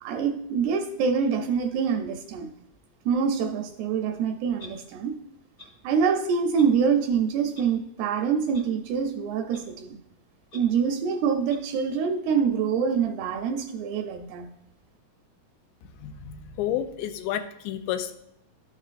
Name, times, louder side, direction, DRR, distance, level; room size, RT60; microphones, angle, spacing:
voice 1, 0.0-2.5 3.1-5.2 5.8-10.0 10.5-14.5, right 6 dB, 80° right, 6 dB, 2.4 m, -25 dB
Clock, 4.6-4.7 5.6-5.7 6.6-6.7 7.5-7.6 8.5-8.6 9.5-9.6 10.5-10.6 11.5-11.6, left 1 dB, 50° left, 1.1 m, -46 dB
voice 2, 16.0-18.2, left 10 dB, 90° left, 7 dB, 2.8 m, -31 dB
12.0 x 6.1 x 2.5 m, 0.76 s
omnidirectional pair, 5.0 m